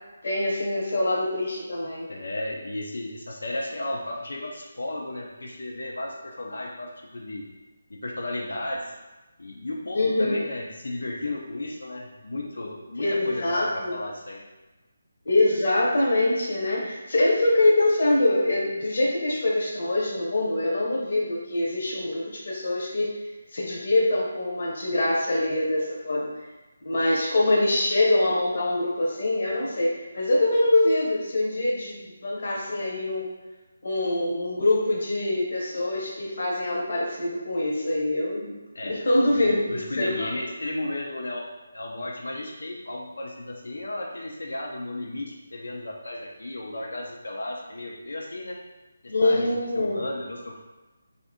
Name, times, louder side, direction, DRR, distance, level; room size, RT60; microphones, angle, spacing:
voice 1, 0.2-2.1 9.9-10.4 13.0-14.0 15.3-23.1 23.5-26.4 26.8-33.3 33.8-38.5 38.8-40.3 49.1-50.0, left 2 dB, 40° left, -4 dB, 0.7 m, -24 dB
voice 2, 2.1-7.5 7.9-8.8 9.4-14.4 38.7-39.0 39.3-41.5 41.7-48.6 49.0-50.6, left 1 dB, 85° left, -1 dB, 0.5 m, -34 dB
2.5 x 2.5 x 3.5 m, 1.1 s
hypercardioid pair, 180°, 0 cm